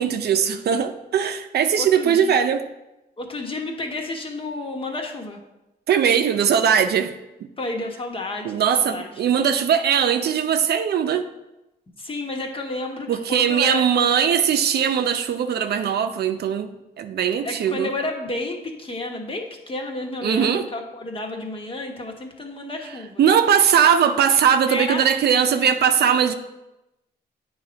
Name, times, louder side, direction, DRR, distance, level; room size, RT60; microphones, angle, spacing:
voice 1, 0.0-2.6 5.9-7.1 8.4-11.3 13.1-17.9 20.2-20.7 23.2-26.3, right 8 dB, 70° right, 8 dB, 0.6 m, -20 dB
voice 2, 1.8-2.3 3.2-5.4 7.6-9.1 12.0-13.8 17.4-23.2 24.7-25.0, left 2 dB, 30° left, 2 dB, 1.2 m, -31 dB
8.8 x 3.2 x 5.1 m, 0.94 s
cardioid pair, 85°, 17 cm